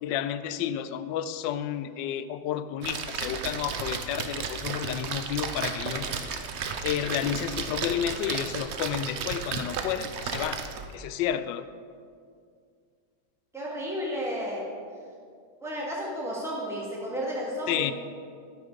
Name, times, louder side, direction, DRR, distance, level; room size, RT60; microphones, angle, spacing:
voice 1, 0.0-6.4 6.8-10.6 10.9-11.7 17.7-17.9, left 10 dB, 85° left, 12 dB, 1.3 m, -31 dB
Splash splatter, 2.8-11.0, right 6 dB, 65° right, 0.7 m, -34 dB
voice 2, 13.5-14.6 15.6-17.9, equal, ahead, -5 dB, 2.2 m, -32 dB
13.0 x 7.1 x 5.1 m, 2.2 s
omnidirectional pair, 1.9 m